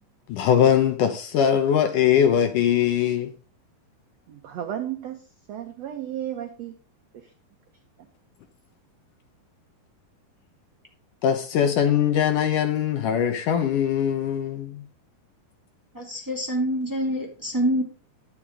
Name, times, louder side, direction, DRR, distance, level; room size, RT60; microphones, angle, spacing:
voice 1, 0.3-3.3 11.2-14.8, left 9 dB, 70° left, 2.1 m, -21 dB
voice 2, 4.3-6.7, right 11 dB, 80° right, 1.5 m, -33 dB
voice 3, 15.9-17.8, equal, 10° right, 1.5 m, -26 dB
11.0 x 9.3 x 3.6 m
omnidirectional pair, 4.4 m